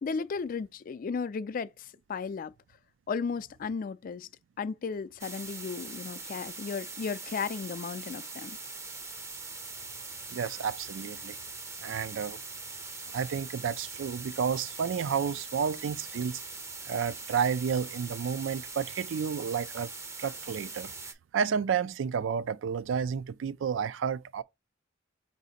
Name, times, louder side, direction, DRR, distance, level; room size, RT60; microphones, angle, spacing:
voice 1, 0.0-2.5 3.1-4.3 4.6-8.6, left 5 dB, 45° left, 0.3 m, -35 dB
sound 1, 5.2-21.1, right 4 dB, 15° right, 0.5 m, -42 dB
voice 2, 10.3-11.4 11.8-12.4 13.1-16.4 16.9-19.9 20.2-20.9 21.3-24.4, right 7 dB, 70° right, 0.3 m, -31 dB
4.9 x 2.7 x 4.0 m
head